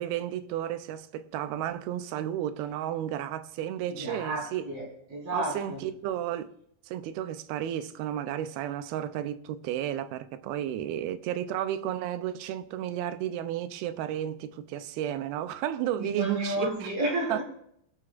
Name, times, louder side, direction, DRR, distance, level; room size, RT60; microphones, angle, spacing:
voice 1, 0.0-4.6 5.3-6.5 6.9-16.9 17.3-17.4, right 11 dB, 85° right, 2.6 m, -33 dB
voice 2, 3.9-5.8 16.0-17.4, right 1 dB, 65° right, 5.9 m, -32 dB
25.5 x 8.8 x 2.5 m
omnidirectional pair, 4.3 m